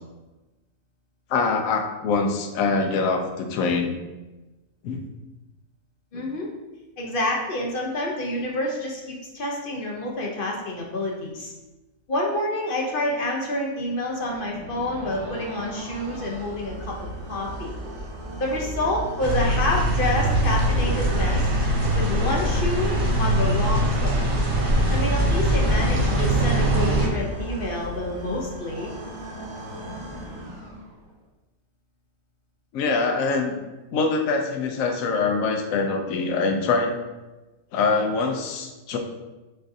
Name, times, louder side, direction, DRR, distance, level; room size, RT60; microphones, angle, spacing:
voice 1, 1.3-4.0 4.8-5.0 32.7-33.6 33.9-37.0 37.7-39.0, left 4 dB, 75° left, 3 dB, 1.0 m, -24 dB
voice 2, 6.1-6.5 7.0-11.5 12.1-16.9 17.3-17.8 18.4-21.5 21.9-24.2 24.9-28.9, left 1 dB, 50° left, -1 dB, 0.7 m, -28 dB
sound 1, 14.1-31.1, right 1 dB, 75° right, 1.3 m, -35 dB
sound 2, 19.2-27.1, right 1 dB, 45° right, 0.7 m, -22 dB
6.1 x 2.5 x 2.6 m, 1.1 s
omnidirectional pair, 1.5 m